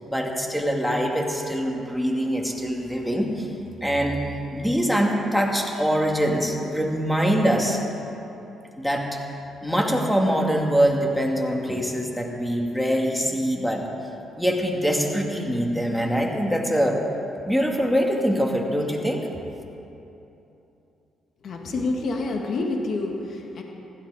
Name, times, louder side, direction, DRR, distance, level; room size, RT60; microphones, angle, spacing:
voice 1, 0.1-3.5 3.8-4.2 4.5-7.8 8.8-9.2 9.6-13.9 14.4-17.0 17.5-19.3, equal, 5° left, 1 dB, 2.1 m, -23 dB
voice 2, 21.4-23.6, left 2 dB, 55° left, 1 dB, 1.8 m, -28 dB
16.0 x 13.0 x 4.9 m, 2.9 s
cardioid pair, 90°, 0 cm